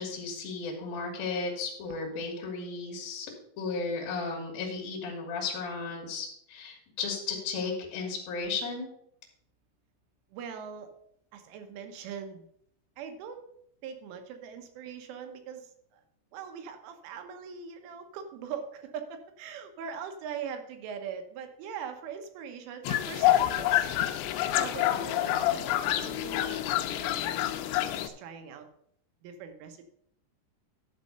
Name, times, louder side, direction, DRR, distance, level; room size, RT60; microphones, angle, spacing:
voice 1, 0.0-3.3 3.6-8.9, left 4 dB, 55° left, 0 dB, 3.0 m, -34 dB
voice 2, 10.3-10.9 11.3-12.5 13.0-13.4 13.8-16.0 16.3-23.9 24.4-28.7 29.2-29.9, right 7 dB, 80° right, 6 dB, 3.3 m, -41 dB
sound 1, 22.9-28.1, left 13 dB, 85° left, 2.7 m, -27 dB
12.0 x 4.1 x 6.5 m, 0.70 s
omnidirectional pair, 5.9 m